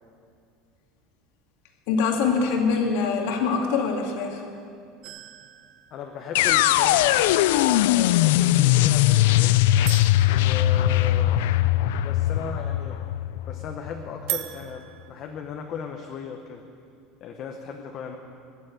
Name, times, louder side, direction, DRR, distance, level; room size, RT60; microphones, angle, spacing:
voice 1, 1.9-4.4, left 5 dB, 70° left, 2 dB, 2.2 m, -24 dB
sound 1, 5.0-6.9 9.8-11.6 14.3-15.1, right 15 dB, 60° right, 0.8 m, -38 dB
voice 2, 5.9-9.6 10.3-11.4 12.0-13.0 13.5-16.6 17.2-18.2, left 6 dB, 35° left, 3 dB, 1.0 m, -36 dB
sound 2, 6.4-14.3, left 14 dB, 90° left, 0.4 m, -20 dB
20.5 x 7.4 x 9.2 m, 2.4 s
cardioid pair, 165°, 0 cm